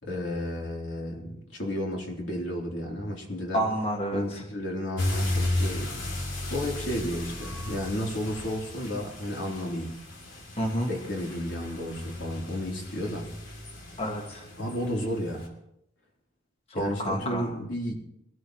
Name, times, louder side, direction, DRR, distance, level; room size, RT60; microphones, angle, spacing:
voice 1, 0.0-3.6 4.1-6.1 6.5-10.0 10.9-13.3 14.6-15.5 16.7-18.0, left 1 dB, 70° left, -1 dB, 3.5 m, -32 dB
voice 2, 3.5-4.4 10.6-10.9 14.0-14.4 16.7-17.5, equal, 30° left, 1 dB, 1.4 m, -29 dB
sound 1, 5.0-15.5, left 1 dB, 85° left, 2.9 m, -34 dB
23.0 x 13.0 x 3.1 m, 0.81 s
head